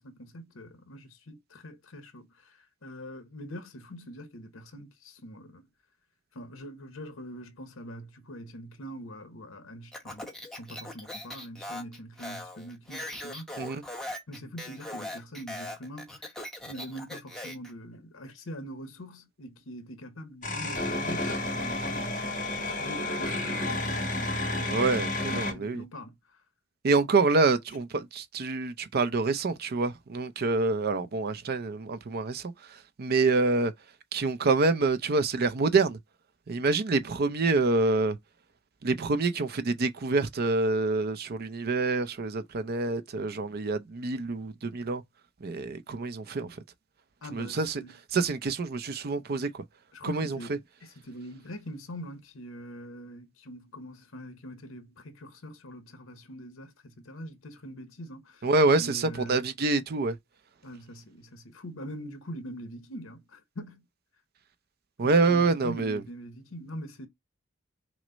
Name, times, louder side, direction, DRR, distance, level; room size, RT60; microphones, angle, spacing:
voice 1, 0.0-5.7 6.3-13.5 14.3-16.2 16.7-24.8 25.2-26.2 47.2-47.9 49.9-58.5 58.8-59.4 60.6-63.9 65.0-67.1, equal, 70° left, 1.0 m, -43 dB
Speech, 9.9-17.7, left 1 dB, 5° left, 0.9 m, -40 dB
sound 1, 20.4-25.5, left 2 dB, 40° left, 1.5 m, -31 dB
voice 2, 24.6-25.8 26.8-32.5 33.0-33.7 34.1-36.0 36.5-38.2 38.8-45.0 45.4-46.5 47.3-47.8 48.1-49.6 50.0-50.6 58.4-60.2 65.0-66.0, right 3 dB, 50° right, 0.5 m, -26 dB
6.2 x 2.1 x 3.9 m
head